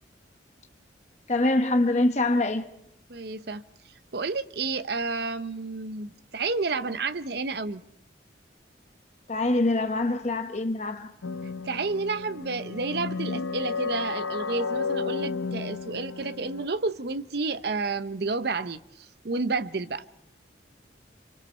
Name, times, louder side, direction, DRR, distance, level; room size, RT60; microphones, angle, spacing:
voice 1, 1.3-2.7 9.3-11.1, left 2 dB, 35° left, 0.9 m, -24 dB
voice 2, 3.1-3.6 4.1-7.8 11.6-20.0, right 3 dB, 55° right, 0.7 m, -30 dB
sound 1, 11.2-16.7, left 4 dB, 85° left, 0.7 m, -32 dB
25.5 x 25.5 x 4.3 m
head